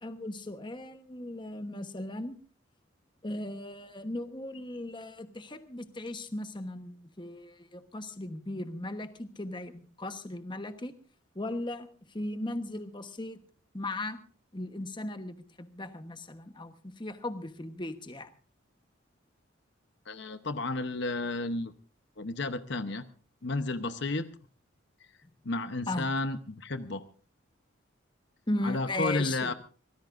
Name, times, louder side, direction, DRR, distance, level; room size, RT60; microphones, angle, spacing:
voice 1, 0.0-2.4 3.2-10.9 11.3-13.4 13.7-14.2 14.5-18.3 25.9-26.0 28.5-29.5, left 1 dB, 25° left, 9 dB, 1.1 m, -37 dB
voice 2, 20.1-21.7 22.2-23.1 23.4-24.3 25.4-27.0 28.6-29.5, left 2 dB, 60° left, 10 dB, 0.9 m, -32 dB
25.0 x 18.0 x 2.6 m, 0.38 s
head